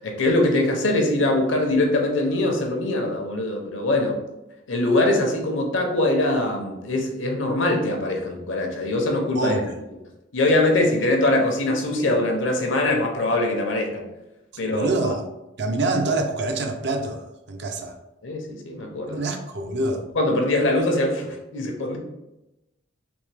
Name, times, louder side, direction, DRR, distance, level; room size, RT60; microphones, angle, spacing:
voice 1, 0.0-4.2 4.7-9.6 10.3-14.0 14.6-14.9 18.2-19.2 20.2-22.0, left 2 dB, 70° left, 2 dB, 0.7 m, -22 dB
voice 2, 9.3-9.7 14.7-15.2 15.6-17.9 19.1-20.0, right 2 dB, 60° right, 4 dB, 0.5 m, -26 dB
3.5 x 2.8 x 3.3 m, 0.96 s
head